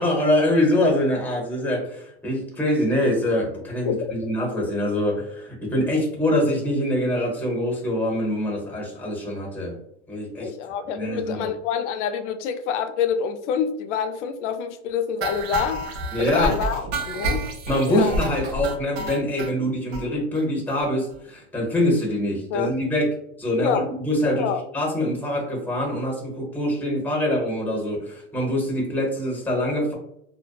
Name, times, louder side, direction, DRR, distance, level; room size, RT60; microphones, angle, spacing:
voice 1, 0.0-9.8 10.1-10.5 10.9-11.5 16.1-16.5 17.7-23.1 23.4-29.9, left 1 dB, 5° left, -2 dB, 0.8 m, -24 dB
voice 2, 10.4-15.8 16.2-17.4 17.9-18.2 22.5-22.7 23.6-23.8 24.2-24.6, left 7 dB, 85° left, 8 dB, 0.5 m, -26 dB
sound 1, 15.2-19.5 19.9-20.0 20.4-20.5 20.7-20.8 21.1-21.2, right 2 dB, 75° right, 0.6 m, -29 dB
2.5 x 2.2 x 2.2 m, 0.73 s
supercardioid pair, 120°, 35 cm